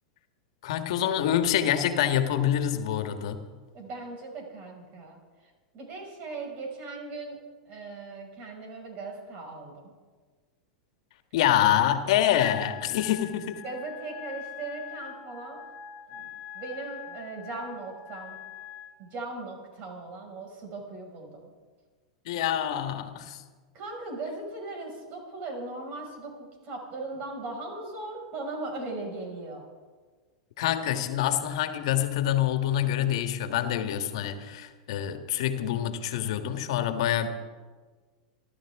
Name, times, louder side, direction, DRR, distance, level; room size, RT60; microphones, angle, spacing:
voice 1, 0.6-3.4 11.3-13.6 22.2-23.4 30.6-37.3, left 11 dB, 65° left, 7 dB, 1.6 m, -26 dB
voice 2, 3.7-9.9 13.6-15.6 16.1-16.3 16.5-18.4 19.0-21.5 23.7-29.6, right 3 dB, 45° right, 1 dB, 5.8 m, -38 dB
Wind instrument woodwind instrument, 12.3-18.9, left 10 dB, 40° left, 2.1 m, -43 dB
28.5 x 12.5 x 3.7 m, 1.4 s
hypercardioid pair, 95°, 3 cm